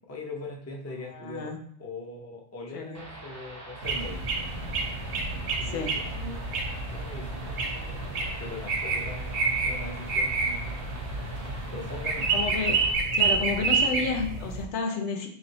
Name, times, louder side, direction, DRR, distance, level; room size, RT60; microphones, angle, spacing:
voice 1, 0.1-1.5 1.8-4.2 5.6-6.7 6.9-7.5 8.4-10.8 11.7-12.3, left 2 dB, 20° left, 0 dB, 0.4 m, -40 dB
voice 2, 1.1-1.6 2.7-3.2 5.6-6.1 12.3-12.8 13.1-15.3, left 4 dB, 90° left, 3 dB, 1.0 m, -31 dB
sound 1, 2.9-12.9, right 1 dB, 20° right, 0.7 m, -44 dB
sound 2, 3.8-14.6, right 4 dB, 85° right, 0.9 m, -29 dB
3.2 x 2.5 x 4.0 m, 0.66 s
omnidirectional pair, 1.1 m